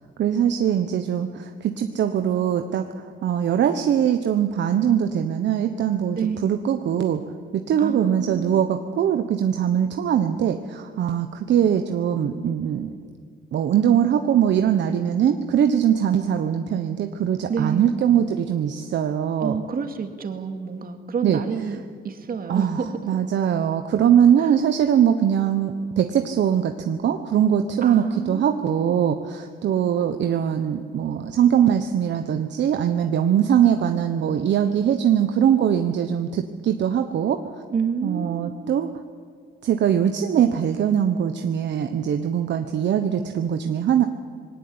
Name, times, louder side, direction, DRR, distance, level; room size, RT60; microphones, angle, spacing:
voice 1, 0.2-2.8 3.2-7.2 7.5-12.9 13.5-19.6 21.2-21.4 22.5-22.8 23.1-37.4 38.0-38.9 39.6-44.1, right 9 dB, 65° right, 7 dB, 1.2 m, -21 dB
voice 2, 6.1-6.5 7.8-8.7 17.5-17.9 19.4-23.2 24.4-24.5 27.8-29.0 37.7-38.6, right 6 dB, 45° right, 5 dB, 2.6 m, -29 dB
20.5 x 18.5 x 8.9 m, 2.1 s
cardioid pair, 90°, 20 cm